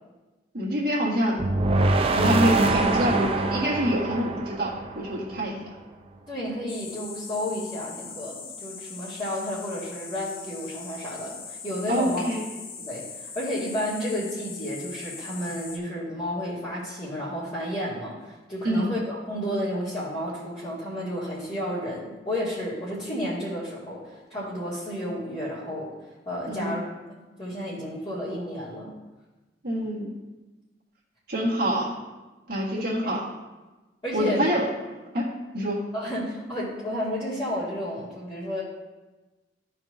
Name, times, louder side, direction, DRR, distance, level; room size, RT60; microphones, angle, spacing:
voice 1, 0.5-1.4 2.1-5.6 11.9-12.5 18.6-18.9 26.5-26.7 29.6-30.1 31.3-31.9 32.5-33.2 34.1-34.7 35.1-35.3 35.5-35.8, equal, 60° right, -5 dB, 1.6 m, -26 dB
sound 1, 1.4-5.5, right 2 dB, 35° right, 0.5 m, -24 dB
voice 2, 6.3-12.2 12.8-25.9 26.3-26.8 27.4-28.9 32.8-33.2 34.0-34.4 35.9-38.6, equal, 30° left, -13 dB, 2.0 m, -32 dB
sound 2, 6.7-15.8, left 5 dB, 55° left, 0.8 m, -41 dB
13.0 x 4.5 x 2.6 m, 1.2 s
head